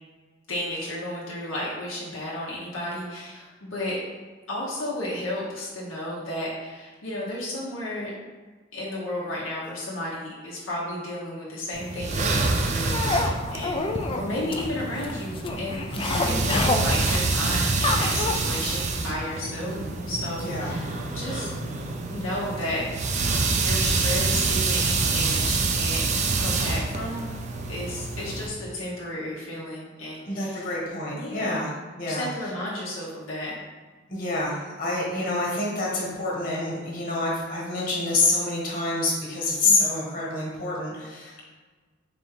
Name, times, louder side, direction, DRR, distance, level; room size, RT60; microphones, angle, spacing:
voice 1, 0.5-4.0 4.5-8.1 8.7-15.9 16.1-21.5 22.1-22.9 23.4-26.0 26.3-27.3 27.7-30.6 31.2-31.6 32.0-33.6 39.6-39.9, left 1 dB, 85° left, -6 dB, 0.9 m, -33 dB
sound 1, 11.7-28.5, right 3 dB, 35° right, 0.4 m, -27 dB
sound 2, 12.9-18.3, left 3 dB, 25° left, 0.3 m, -28 dB
voice 2, 15.9-16.4 20.4-20.7 30.3-32.3 34.1-41.4, left 2 dB, 45° left, -4 dB, 1.4 m, -27 dB
4.1 x 3.3 x 3.5 m, 1.4 s
head